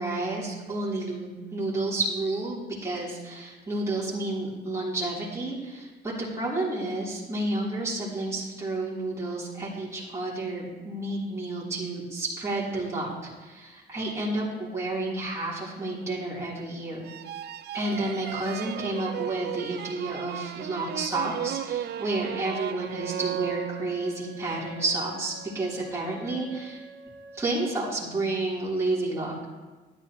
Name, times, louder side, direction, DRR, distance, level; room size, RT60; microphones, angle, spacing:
voice 1, 0.0-13.1 13.4-17.0 17.7-26.8 27.3-29.3, right 2 dB, 15° right, -8 dB, 3.1 m, -30 dB
sound 1, 17.0-24.2, right 11 dB, 55° right, 0.4 m, -35 dB
Wind instrument woodwind instrument, 23.7-28.3, right 2 dB, 45° left, 2.6 m, -48 dB
12.0 x 10.0 x 2.9 m, 1.3 s
cardioid pair, 90°, 20 cm